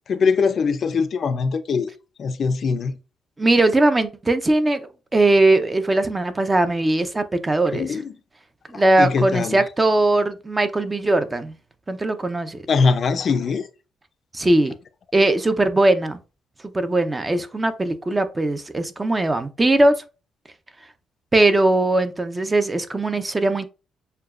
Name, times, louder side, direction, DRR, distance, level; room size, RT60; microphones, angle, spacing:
voice 1, 0.1-1.9 2.2-2.9 7.7-8.1 9.0-9.6 12.7-13.7, left 5 dB, 50° left, 0.4 m, -21 dB
voice 2, 3.4-8.0 8.7-11.5 11.9-12.6 14.3-14.7 15.1-16.2 16.7-20.0 21.3-23.6, right 2 dB, 20° right, 0.5 m, -20 dB
6.6 x 2.3 x 2.4 m
cardioid pair, 90°, 0 cm